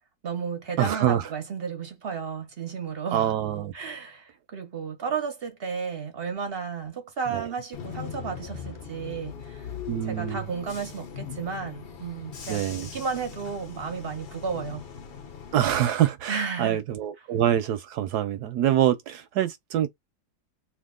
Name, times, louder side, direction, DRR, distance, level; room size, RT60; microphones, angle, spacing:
voice 1, 0.2-3.3 3.7-9.7 10.0-14.8 16.3-16.8, right 6 dB, 55° right, 0.6 m, -33 dB
voice 2, 0.8-1.3 3.1-3.7 7.3-7.5 9.9-10.4 12.5-12.9 15.5-19.9, right 11 dB, 70° right, 1.0 m, -25 dB
Bus / Engine, 7.7-15.7, left 7 dB, 55° left, 0.6 m, -40 dB
2.8 x 2.4 x 3.6 m
omnidirectional pair, 2.0 m